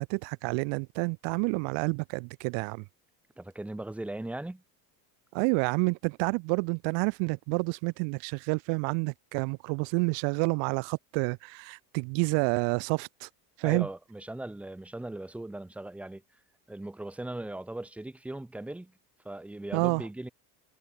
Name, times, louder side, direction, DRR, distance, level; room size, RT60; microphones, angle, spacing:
voice 1, 0.0-2.8 5.3-13.3 13.6-13.9 19.7-20.1, right 35 dB, 65° right, 0.8 m, -29 dB
voice 2, 3.4-4.6 13.6-16.2 16.7-18.9 19.2-20.3, right 1 dB, 5° right, 0.4 m, -38 dB
supercardioid pair, 110°, 47 cm